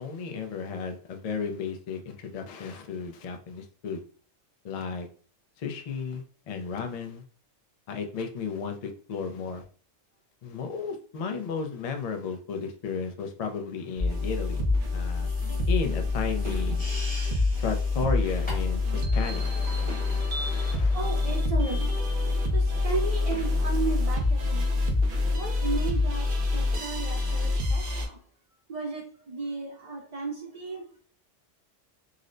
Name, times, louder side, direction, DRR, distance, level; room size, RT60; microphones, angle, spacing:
voice 1, 0.0-4.0 4.6-5.1 5.6-7.2 7.9-9.6 10.4-14.6 14.9-15.3 15.7-16.8 17.6-21.0, left 5 dB, 60° left, 5 dB, 0.3 m, -34 dB
sound 1, 14.0-28.1, left 3 dB, 55° right, 0.7 m, -26 dB
sound 2, 15.1-18.9, equal, 10° left, 0.8 m, -40 dB
voice 2, 20.9-22.1 22.5-25.0 25.3-28.2 28.7-30.8, right 4 dB, 70° right, -1 dB, 0.3 m, -35 dB
3.9 x 2.1 x 2.5 m, 0.43 s
omnidirectional pair, 1.3 m